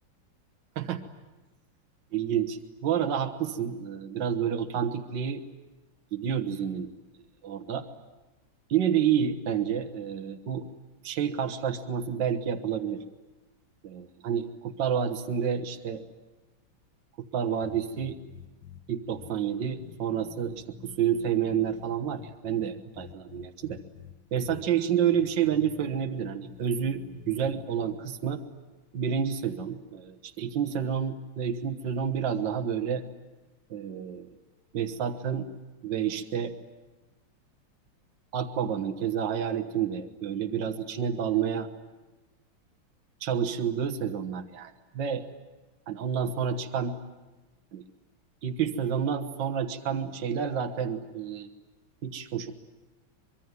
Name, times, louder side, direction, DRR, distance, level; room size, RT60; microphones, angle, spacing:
voice 1, 2.1-5.4 6.1-6.9 7.4-7.9 8.7-10.7 11.0-13.0 13.8-16.0 17.2-18.2 18.9-23.8 24.3-28.4 28.9-33.0 33.7-34.3 34.7-35.5 35.8-36.5 38.3-41.7 43.2-45.3 45.9-47.0 47.7-47.8 48.4-51.5 52.0-52.5, right 8 dB, 60° right, 5 dB, 1.9 m, -29 dB
sound 1, 17.6-18.8 19.1-19.3 19.8-22.6 23.0-24.1 24.5-24.6 25.1-28.0, left 8 dB, 70° left, 2.4 m, -47 dB
25.0 x 23.0 x 9.6 m, 1.2 s
omnidirectional pair, 2.3 m